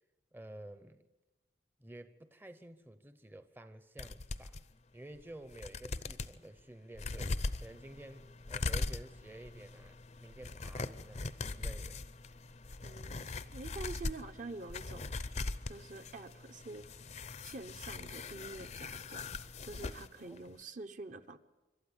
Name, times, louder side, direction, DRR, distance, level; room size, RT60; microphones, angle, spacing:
voice 1, 0.3-1.0 1.8-4.6 4.9-12.1 20.2-20.5, right 1 dB, 10° right, 0.7 m, -51 dB
sound 1, 4.0-4.6 5.2-5.3 5.5-6.3 6.9-20.1 20.4-20.5, left 3 dB, 40° left, 0.6 m, -41 dB
voice 2, 12.8-15.1 15.7-16.8 17.4-21.4, right 3 dB, 45° right, 0.9 m, -47 dB
26.5 x 12.5 x 8.1 m
head